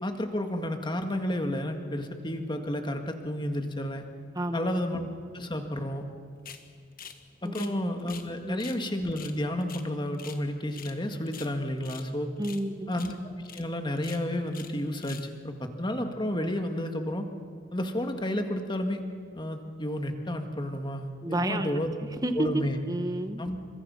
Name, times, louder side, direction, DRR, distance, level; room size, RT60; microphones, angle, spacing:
voice 1, 0.0-4.0 4.5-5.1 5.3-6.0 7.4-12.3 12.9-13.1 13.5-17.3 17.7-19.0 19.3-21.9 22.4-22.8 23.4-23.6, left 1 dB, 25° left, 5 dB, 1.8 m, -31 dB
voice 2, 4.3-4.6 7.4-7.7 8.4-8.6 12.4-12.9 21.2-21.8 22.2-23.4, right 1 dB, 20° right, 7 dB, 1.1 m, -30 dB
sound 1, 6.4-6.6 7.0-7.2 7.4-8.3 8.6-8.8 9.1-10.4 10.7-11.0 11.2-12.1 12.4-12.7 12.9-13.1 13.4-13.6 14.0-14.7 15.0-15.3, left 8 dB, 45° left, 1.5 m, -45 dB
30.0 x 25.5 x 5.7 m, 2.1 s
head